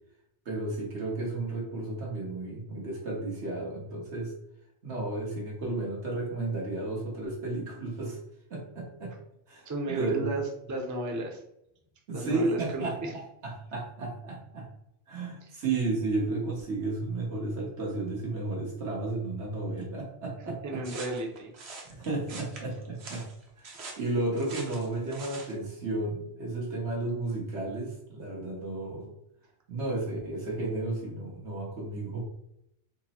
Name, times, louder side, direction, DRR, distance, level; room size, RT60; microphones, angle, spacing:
voice 1, 0.4-4.3 4.8-8.2 8.5-9.1 9.5-10.2 12.1-12.9 13.4-14.7 15.1-20.8 22.0-23.2 23.6-29.1 29.7-32.2, right 2 dB, 85° right, -2 dB, 1.5 m, -33 dB
voice 2, 9.7-10.4 10.7-11.4 12.1-13.1 20.6-21.5, right 2 dB, 20° right, 1 dB, 0.5 m, -33 dB
sound 1, 20.8-25.6, right 3 dB, 70° right, 1.1 m, -44 dB
4.3 x 2.0 x 4.2 m, 0.78 s
omnidirectional pair, 1.1 m